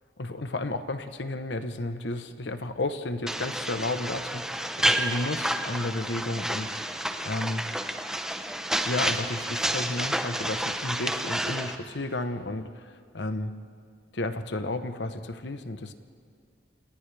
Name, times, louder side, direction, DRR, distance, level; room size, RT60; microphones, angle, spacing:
voice 1, 0.2-6.8 7.2-7.7 8.8-13.5 14.1-15.9, left 2 dB, 80° left, 9 dB, 1.0 m, -32 dB
sound 1, 3.3-11.8, right 1 dB, 5° right, 0.8 m, -30 dB
29.0 x 28.0 x 3.5 m, 2.2 s
head